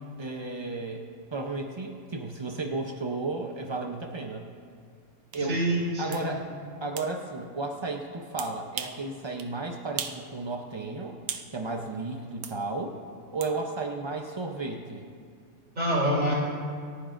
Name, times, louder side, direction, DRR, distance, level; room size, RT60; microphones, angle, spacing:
voice 1, 0.2-4.5 5.3-5.6 6.0-11.2 11.5-13.0 13.3-15.1, right 3 dB, 45° right, 2 dB, 0.3 m, -33 dB
sound 1, 5.3-5.4 6.1-6.3 7.0-7.1 8.4-9.0 9.4-9.5 10.0-10.2 10.6-11.5 12.4-12.6 13.4-13.5, right 8 dB, 90° right, 1.2 m, -37 dB
voice 2, 5.4-6.3 15.8-16.3, right 1 dB, 65° right, -6 dB, 3.6 m, -26 dB
28.0 x 10.0 x 2.5 m, 2.2 s
omnidirectional pair, 1.5 m